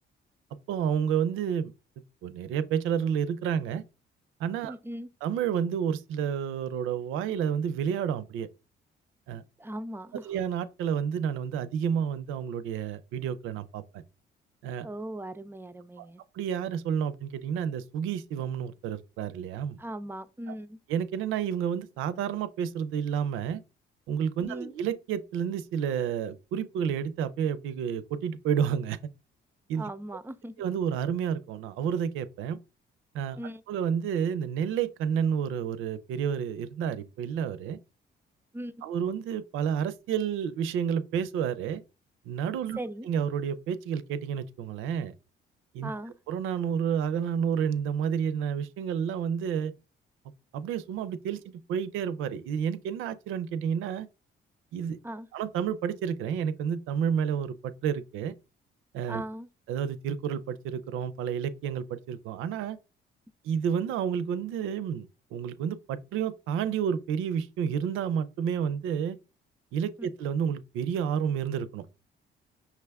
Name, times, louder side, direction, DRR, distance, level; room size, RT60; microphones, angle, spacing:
voice 1, 0.7-1.7 2.2-3.8 4.4-4.7 5.2-8.5 9.3-9.4 10.3-14.0 14.6-14.9 16.0-16.1 16.3-19.8 20.9-23.6 24.1-29.0 29.7-29.8 30.6-32.6 33.1-33.4 33.7-37.8 38.8-41.8 42.3-42.8 43.0-45.1 45.7-45.9 46.3-49.7 50.5-51.4 51.7-54.1 54.7-55.0 55.3-58.3 58.9-59.2 59.7-62.8 63.4-69.2 69.7-71.9, right 8 dB, 90° right, 0.4 m, -30 dB
voice 2, 4.6-5.1 9.6-10.3 14.8-16.2 19.8-20.8 24.4-24.7 29.7-30.5 33.4-33.6 38.5-38.9 42.8-43.1 45.8-46.1 55.0-55.3 59.1-59.5 70.0-70.1, right 1 dB, 10° right, 0.3 m, -38 dB
5.7 x 2.3 x 3.3 m
cardioid pair, 90°, 20 cm